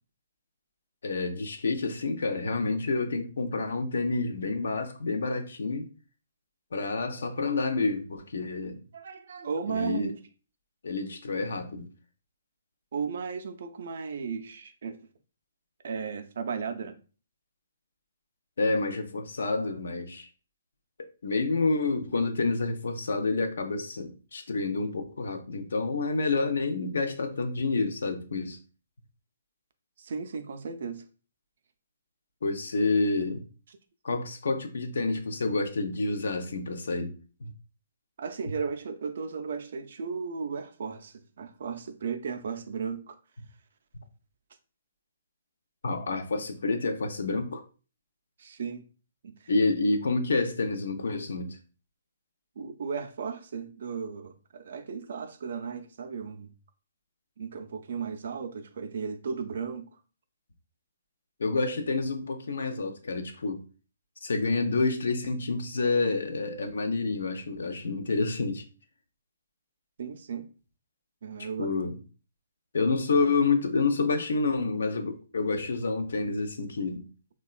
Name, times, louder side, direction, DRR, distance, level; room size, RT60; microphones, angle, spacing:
voice 1, 1.0-5.9 6.7-8.8 9.7-10.1 10.8-11.9 18.6-20.3 21.2-28.6 32.4-33.4 34.0-37.2 37.4-37.5 45.8-47.6 49.5-51.6 61.4-63.6 64.2-68.6 71.6-72.0 72.7-77.1, left 3 dB, 70° left, 0.4 m, -28 dB
voice 2, 8.9-10.2 12.9-15.0 15.8-16.9 30.0-31.0 38.2-43.2 48.4-48.9 49.2-49.5 52.6-56.5 57.4-59.9 70.0-70.5 71.2-71.7, right 5 dB, 60° right, 0.3 m, -35 dB
2.9 x 2.2 x 2.3 m
figure-of-eight pair, 130°, 0 cm